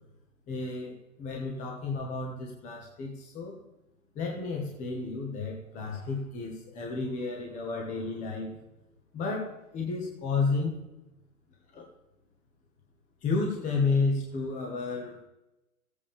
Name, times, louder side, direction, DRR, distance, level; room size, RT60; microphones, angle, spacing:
voice 1, 0.5-3.6 4.1-8.5 9.1-10.8 11.7-11.9 13.2-15.2, left 4 dB, 15° left, 0 dB, 1.4 m, -32 dB
15.0 x 8.5 x 3.5 m, 0.94 s
hypercardioid pair, 140°, 44 cm